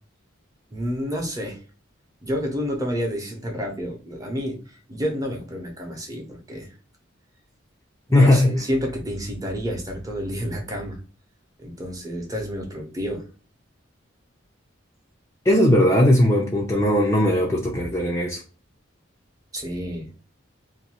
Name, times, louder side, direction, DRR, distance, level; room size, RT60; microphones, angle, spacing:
voice 1, 0.7-1.6 2.2-6.7 8.1-11.0 11.6-13.2 19.5-20.1, equal, 15° right, 0.7 m, -29 dB
voice 2, 8.1-8.5 15.5-18.4, left 1 dB, 15° left, 0.4 m, -18 dB
2.6 x 2.2 x 2.9 m
head